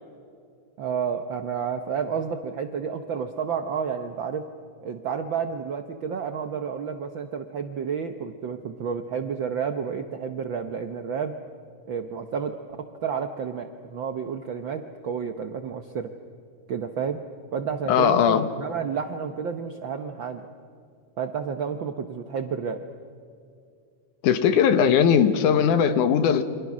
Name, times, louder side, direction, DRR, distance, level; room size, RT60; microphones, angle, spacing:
voice 1, 0.8-4.5 4.8-11.4 11.9-16.1 16.7-17.2 17.5-20.5 21.2-22.8, right 6 dB, 75° right, 7 dB, 1.1 m, -30 dB
voice 2, 17.9-18.5 24.2-26.4, left 8 dB, 85° left, 11 dB, 2.7 m, -19 dB
29.0 x 25.0 x 6.2 m, 2.4 s
omnidirectional pair, 3.5 m